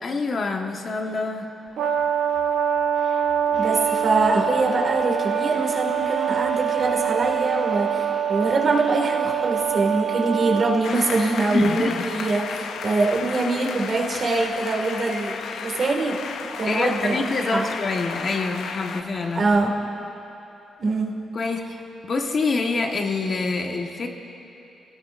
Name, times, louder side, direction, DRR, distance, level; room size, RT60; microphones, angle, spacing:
voice 1, 0.0-1.5 11.5-12.1 16.6-19.5 21.3-21.8 22.0-24.1, left 3 dB, 45° left, 3 dB, 1.4 m, -26 dB
Brass instrument, 1.8-10.8, right 8 dB, 70° right, 0.8 m, -24 dB
Crowd, 3.5-19.5, right 2 dB, 25° right, 2.2 m, -43 dB
voice 2, 3.5-16.2 16.6-17.7 19.3-19.7 20.8-21.1, right 3 dB, 50° right, 0 dB, 2.0 m, -24 dB
sound 1, 10.8-19.0, left 7 dB, 80° left, 0.5 m, -34 dB
27.5 x 18.0 x 2.6 m, 3.0 s
cardioid pair, 110°, 0 cm